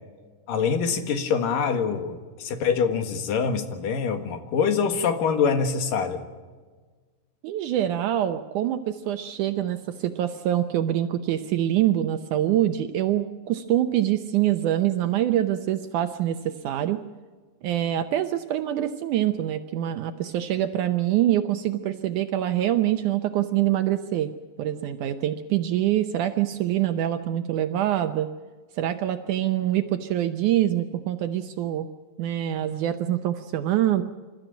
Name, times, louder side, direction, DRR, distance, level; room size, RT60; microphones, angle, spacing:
voice 1, 0.5-6.2, left 6 dB, 70° left, 7 dB, 3.2 m, -25 dB
voice 2, 7.4-17.0 17.6-24.3 24.6-28.3 28.8-31.9 32.2-34.0, right 12 dB, 75° right, 9 dB, 2.0 m, -25 dB
27.5 x 14.0 x 9.0 m, 1.4 s
omnidirectional pair, 4.2 m